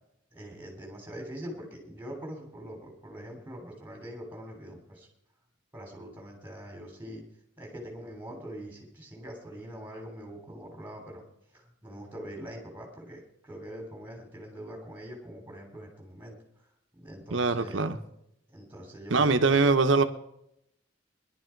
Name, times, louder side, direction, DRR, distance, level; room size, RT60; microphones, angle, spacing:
voice 1, 0.3-5.1 5.7-7.2 7.6-11.2 11.5-16.4 16.9-17.8 18.5-19.7, equal, 10° right, 1 dB, 3.4 m, -43 dB
voice 2, 17.3-18.0 19.1-20.0, right 3 dB, 80° right, 8 dB, 1.0 m, -23 dB
19.5 x 11.5 x 4.6 m, 0.79 s
head